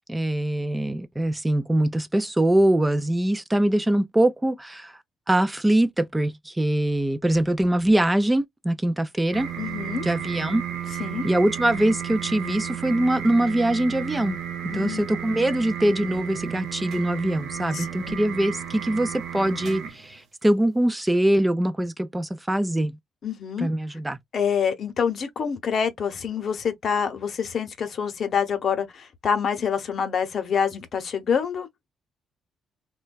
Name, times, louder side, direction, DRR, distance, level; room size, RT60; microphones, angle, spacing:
voice 1, 0.1-5.0 5.3-9.5 10.0-10.6 11.2-14.4 14.7-22.9 23.6-24.2, right 1 dB, 10° right, 0.3 m, -23 dB
sound 1, 9.3-20.2, right 9 dB, 70° right, 0.8 m, -33 dB
voice 2, 9.6-10.1 11.0-11.3 14.7-15.0 17.7-18.1 23.2-23.7 24.3-31.7, left 7 dB, 55° left, 0.7 m, -26 dB
3.2 x 2.2 x 2.2 m
cardioid pair, 90°, 0 cm